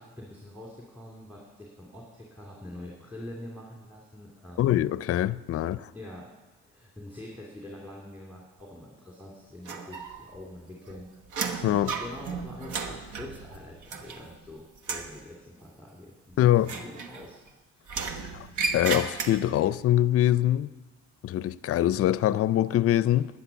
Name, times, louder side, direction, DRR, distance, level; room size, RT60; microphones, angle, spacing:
voice 1, 0.0-4.7 5.9-6.3 6.6-11.1 12.0-17.4 17.7-18.0, left 1 dB, 5° right, 2.6 m, -45 dB
voice 2, 4.6-5.9 11.6-11.9 16.4-16.7 18.3-18.5 18.7-20.7 21.2-23.3, left 12 dB, 50° left, 0.4 m, -23 dB
sound 1, 9.7-10.4 10.7-14.5 14.8-15.2 16.6-17.5 17.9-19.7, right 4 dB, 85° right, 1.2 m, -34 dB
12.5 x 9.4 x 7.0 m
cardioid pair, 90°, 30 cm